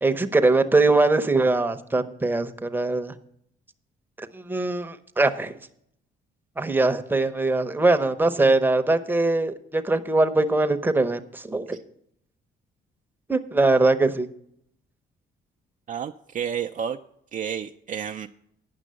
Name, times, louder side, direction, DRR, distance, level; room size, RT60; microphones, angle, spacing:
voice 1, 0.0-3.1 4.2-5.6 6.6-11.8 13.3-14.3, right 2 dB, 10° right, 7 dB, 0.8 m, -22 dB
voice 2, 15.9-17.0 17.3-18.3, right 8 dB, 40° right, 6 dB, 0.4 m, -31 dB
9.4 x 6.0 x 7.5 m, 0.71 s
cardioid pair, 90°, 20 cm